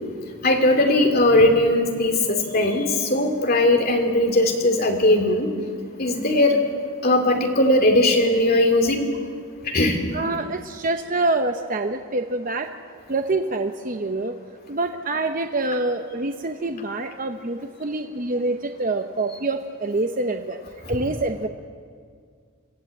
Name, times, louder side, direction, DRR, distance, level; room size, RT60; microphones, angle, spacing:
voice 1, 0.4-5.5 6.0-6.6 7.0-9.1 9.6-10.0, left 1 dB, 45° left, 3 dB, 2.8 m, -19 dB
voice 2, 10.1-12.7 13.1-14.3 14.7-20.6 20.9-21.5, right 2 dB, 40° right, 6 dB, 0.8 m, -26 dB
26.0 x 15.5 x 8.5 m, 2.1 s
head